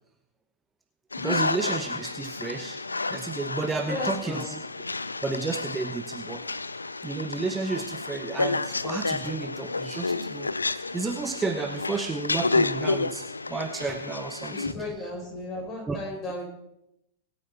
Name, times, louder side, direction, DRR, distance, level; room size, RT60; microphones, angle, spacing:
sound 1, 1.1-14.7, left 3 dB, 80° left, 0.5 m, -30 dB
voice 1, 1.2-2.8 3.1-4.4 5.2-6.4 7.0-10.5 10.9-14.5 15.9-16.0, right 4 dB, 15° right, 6 dB, 1.0 m, -32 dB
voice 2, 3.8-4.5 14.5-16.5, left 1 dB, 30° left, -2 dB, 7.1 m, -35 dB
23.0 x 8.6 x 4.3 m, 0.83 s
figure-of-eight pair, 90°, 0 cm